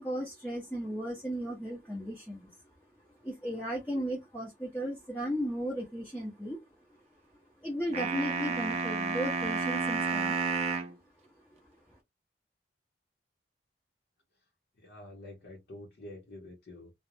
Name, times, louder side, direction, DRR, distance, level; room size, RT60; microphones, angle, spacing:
voice 1, 0.0-2.5 3.2-6.6 7.6-10.4 11.5-11.6, equal, 10° left, 0.7 m, -35 dB
sound 1, 7.9-10.9, right 4 dB, 40° right, 0.4 m, -31 dB
voice 2, 14.8-16.9, left 1 dB, 70° left, 0.7 m, -47 dB
2.4 x 2.0 x 3.1 m
head